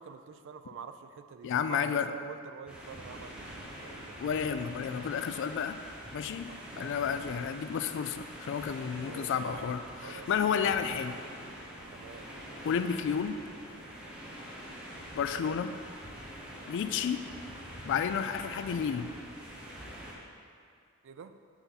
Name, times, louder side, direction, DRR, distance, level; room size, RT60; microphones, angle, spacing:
voice 1, 0.0-4.2 6.5-7.0 9.0-9.6 10.0-10.6 11.9-12.3 21.0-21.3, right 6 dB, 60° right, 10 dB, 0.3 m, -47 dB
voice 2, 1.4-2.1 4.2-5.8 6.1-6.5 6.8-11.2 12.6-13.4 15.2-15.7 16.7-17.2 17.9-19.1, left 7 dB, 60° left, 10 dB, 0.3 m, -31 dB
sound 1, 2.7-20.1, equal, 5° right, 0.9 m, -45 dB
5.9 x 5.5 x 4.0 m, 2.2 s
head